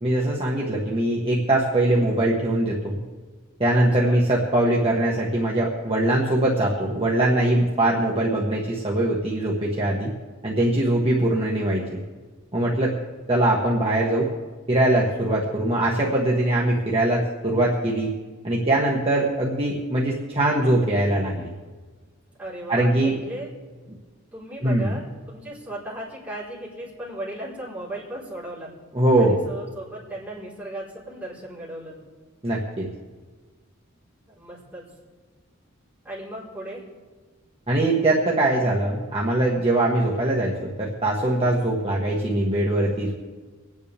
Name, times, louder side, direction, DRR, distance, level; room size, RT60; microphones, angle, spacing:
voice 1, 0.0-3.0 3.6-10.1 10.4-12.0 12.5-12.9 13.3-14.3 14.7-18.1 18.4-21.5 22.7-23.1 24.6-24.9 28.9-29.4 32.4-32.9 37.7-43.1, right 1 dB, 30° right, -4 dB, 1.4 m, -22 dB
voice 2, 3.7-4.2 22.4-23.5 24.3-28.7 29.2-32.0 34.3-34.9 36.0-36.8, right 1 dB, 10° right, -9 dB, 4.2 m, -36 dB
25.5 x 9.8 x 3.5 m, 1.4 s
head